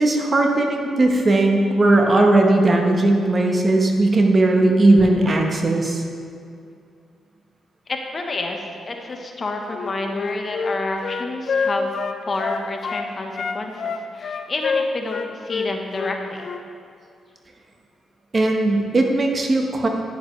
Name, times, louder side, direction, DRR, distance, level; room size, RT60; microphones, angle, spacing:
voice 1, 0.0-6.0 18.3-19.9, right 2 dB, 40° right, 2 dB, 1.2 m, -17 dB
voice 2, 7.9-11.9 12.2-16.5, left 2 dB, 40° left, 3 dB, 1.1 m, -29 dB
Wind instrument woodwind instrument, 9.7-13.1 13.3-16.6, left 5 dB, 60° left, 0.5 m, -26 dB
10.0 x 9.3 x 3.2 m, 2.3 s
cardioid pair, 75°, 0 cm